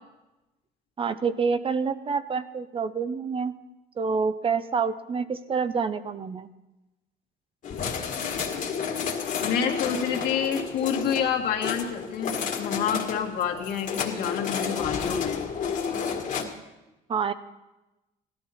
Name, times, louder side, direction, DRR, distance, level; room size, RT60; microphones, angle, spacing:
voice 1, 1.0-3.5 4.0-6.5 17.1-17.3, right 5 dB, 35° right, 12 dB, 0.6 m, -27 dB
sound 1, 7.6-16.4, left 6 dB, 50° left, 1.8 m, -31 dB
voice 2, 9.4-15.5, left 7 dB, 75° left, 2 dB, 2.0 m, -28 dB
16.5 x 12.5 x 4.3 m, 1.0 s
cardioid pair, 110°, 17 cm